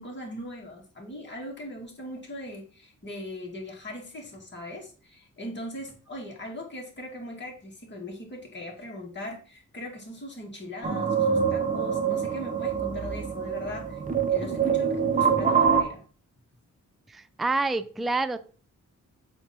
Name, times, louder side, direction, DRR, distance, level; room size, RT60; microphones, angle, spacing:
voice 1, 0.0-14.0 14.3-16.0, left 1 dB, 35° left, -1 dB, 2.3 m, -40 dB
sound 1, 10.8-15.8, right 6 dB, 25° right, 0.8 m, -25 dB
voice 2, 17.1-18.4, right 3 dB, ahead, 12 dB, 0.3 m, -27 dB
7.8 x 2.8 x 6.0 m, 0.40 s
wide cardioid pair, 125°, 32 cm